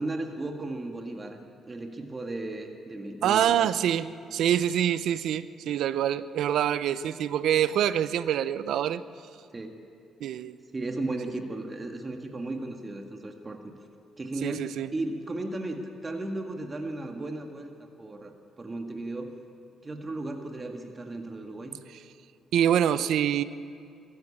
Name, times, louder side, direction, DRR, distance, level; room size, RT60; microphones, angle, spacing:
voice 1, 0.0-1.4 1.7-3.7 9.5-9.8 10.7-13.7 14.2-19.3 19.8-21.8, right 2 dB, 25° right, 3 dB, 1.7 m, -35 dB
voice 2, 3.2-9.0 10.2-10.6 14.4-14.9 22.5-23.4, right 10 dB, 75° right, 15 dB, 0.6 m, -25 dB
21.5 x 14.0 x 8.6 m, 2.4 s
cardioid pair, 90°, 0 cm